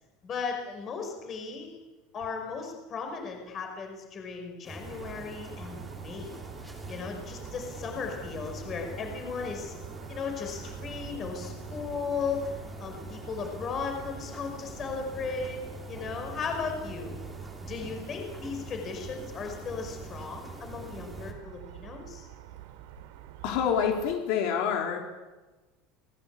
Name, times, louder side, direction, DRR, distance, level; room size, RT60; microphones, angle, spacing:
voice 1, 0.2-1.7 2.1-6.3 6.9-9.7 10.1-12.5 12.8-15.6 15.9-17.2 17.7-22.3, left 5 dB, 25° left, 4 dB, 5.4 m, -36 dB
sound 1, 4.6-21.3, right 1 dB, ahead, 3.4 m, -44 dB
sound 2, 4.8-24.2, right 13 dB, 75° right, 3.1 m, -47 dB
voice 2, 23.4-25.0, left 7 dB, 60° left, 2 dB, 4.1 m, -27 dB
29.5 x 21.0 x 8.5 m, 1.2 s
cardioid pair, 175°, 0 cm